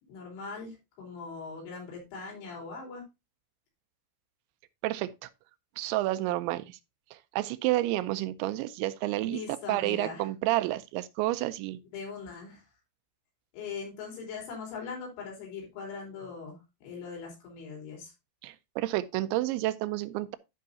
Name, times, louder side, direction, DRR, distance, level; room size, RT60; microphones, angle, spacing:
voice 1, 0.1-3.0 9.2-10.3 11.9-12.7 13.5-18.1, left 5 dB, 80° left, 6.4 m, -41 dB
voice 2, 4.8-5.3 5.8-6.8 7.3-9.4 9.7-11.8 18.4-20.4, right 16 dB, 85° right, 2.9 m, -30 dB
13.5 x 5.7 x 2.7 m
omnidirectional pair, 5.3 m